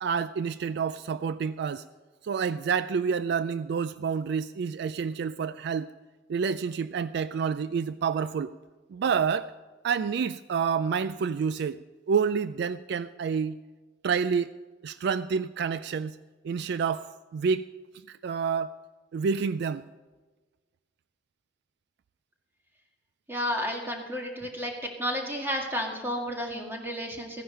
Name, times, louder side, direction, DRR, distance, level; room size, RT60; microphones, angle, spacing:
voice 1, 0.0-1.9 2.2-5.9 6.3-8.6 8.9-9.5 9.8-11.8 12.1-13.6 14.0-14.6 14.8-16.2 16.4-17.7 17.9-18.8 19.1-19.8, right 6 dB, 60° right, 15 dB, 0.3 m, -28 dB
voice 2, 23.3-24.7 25.0-27.4, equal, 10° right, 1 dB, 1.9 m, -32 dB
15.0 x 10.5 x 5.5 m, 1.3 s
head